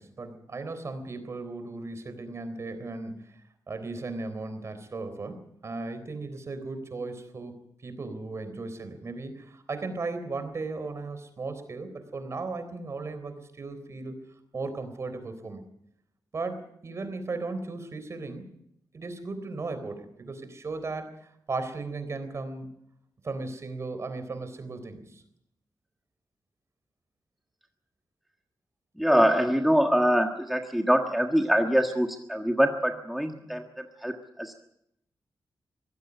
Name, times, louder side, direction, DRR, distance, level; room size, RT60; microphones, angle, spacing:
voice 1, 0.0-3.4 3.7-14.2 14.5-15.7 16.3-18.5 18.9-22.7 23.2-25.2, right 3 dB, 45° right, 10 dB, 3.7 m, -36 dB
voice 2, 29.0-34.5, equal, ahead, 4 dB, 1.5 m, -24 dB
23.5 x 16.5 x 8.1 m, 0.76 s
wide cardioid pair, 135°, 7 cm